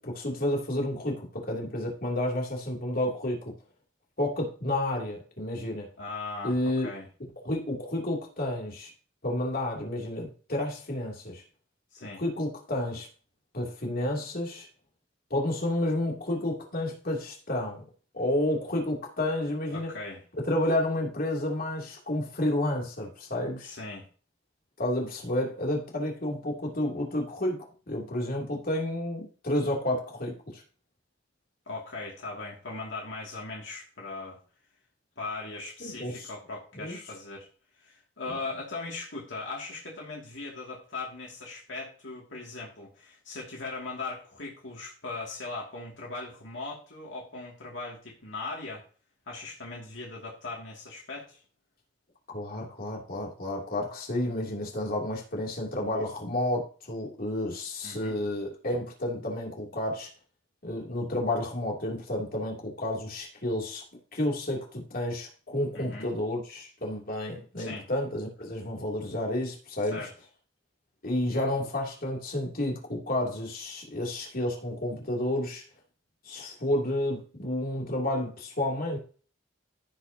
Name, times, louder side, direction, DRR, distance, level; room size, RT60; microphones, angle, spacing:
voice 1, 0.0-3.5 4.2-5.9 6.4-6.9 7.4-8.9 9.2-11.4 12.2-13.1 13.5-14.7 15.3-17.8 18.1-19.9 20.4-23.7 24.8-27.6 27.9-30.6 35.8-36.3 36.7-37.0 52.3-60.1 60.6-63.8 64.1-70.0 71.0-75.6 76.2-79.0, left 1 dB, 50° left, -1 dB, 2.9 m, -30 dB
voice 2, 6.0-7.1 11.9-12.2 19.7-20.2 23.6-24.0 31.7-34.4 35.2-37.5 37.8-48.8 49.3-51.4 57.8-58.2 65.7-66.1 67.6-67.9 69.9-70.1, left 3 dB, 70° left, -2 dB, 2.5 m, -39 dB
15.5 x 5.6 x 2.9 m, 0.40 s
head